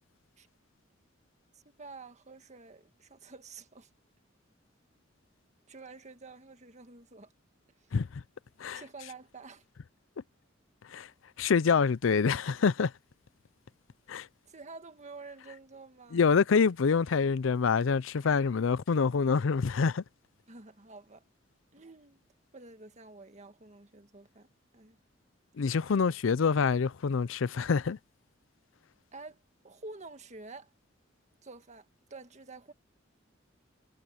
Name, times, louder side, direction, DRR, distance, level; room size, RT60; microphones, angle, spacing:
voice 1, 1.5-3.9 5.7-7.3 7.8-7.9 8.7-9.7 14.5-16.2 18.2-18.4 20.5-21.2 21.7-22.2 22.5-24.5 24.7-25.0 29.1-30.7 31.4-32.7, right 3 dB, 35° right, 1.6 m, -49 dB
voice 2, 11.4-12.9 14.1-14.3 16.1-20.0 25.6-28.0, left 5 dB, 80° left, 0.5 m, -26 dB
head